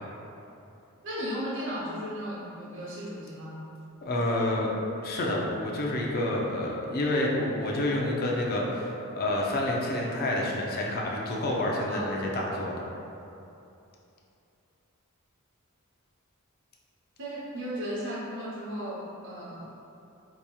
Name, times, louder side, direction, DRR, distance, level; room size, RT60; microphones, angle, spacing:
voice 1, 1.0-3.6 11.9-12.1 17.2-19.7, equal, 60° right, -5 dB, 0.8 m, -35 dB
voice 2, 4.0-4.7 5.0-12.7, left 1 dB, 45° left, -2 dB, 0.5 m, -28 dB
4.8 x 2.8 x 2.3 m, 2.7 s
head